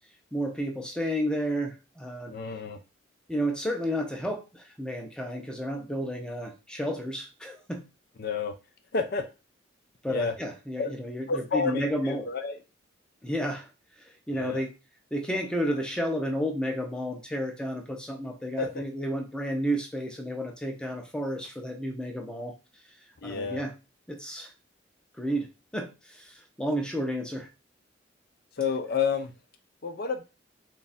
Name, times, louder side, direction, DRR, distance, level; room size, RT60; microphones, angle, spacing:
voice 1, 0.3-2.3 3.3-7.8 10.0-12.3 13.2-13.7 14.3-14.7 15.1-22.5 23.2-23.7 24.1-24.5 25.2-25.5 25.7-27.5, equal, 5° left, 3 dB, 0.6 m, -31 dB
voice 2, 2.3-2.8 8.2-8.5 8.9-9.3 10.1-10.3 10.8-10.9 11.3-12.6 14.3-14.6 18.6-18.8 23.2-23.6 28.6-29.3 29.8-30.2, left 5 dB, 50° left, 6 dB, 0.5 m, -30 dB
3.5 x 2.4 x 4.1 m, 0.29 s
head